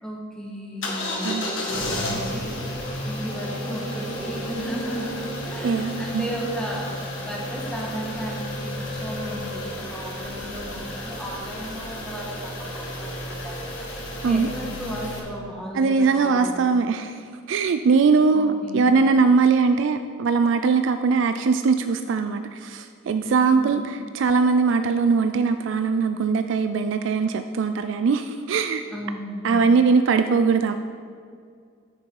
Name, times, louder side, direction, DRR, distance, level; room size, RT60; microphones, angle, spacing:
voice 1, 0.0-2.6 3.0-6.9 7.2-13.9 14.2-16.7 18.3-19.0 23.2-23.8 28.9-29.6, right 1 dB, 5° left, -3 dB, 1.5 m, -34 dB
sound 1, 0.8-15.2, left 1 dB, 70° left, 1.6 m, -32 dB
voice 2, 5.6-6.2 14.2-14.5 15.7-17.2 17.5-28.8 29.4-30.7, right 4 dB, 65° right, 9 dB, 0.3 m, -21 dB
9.3 x 6.6 x 4.6 m, 2.2 s
head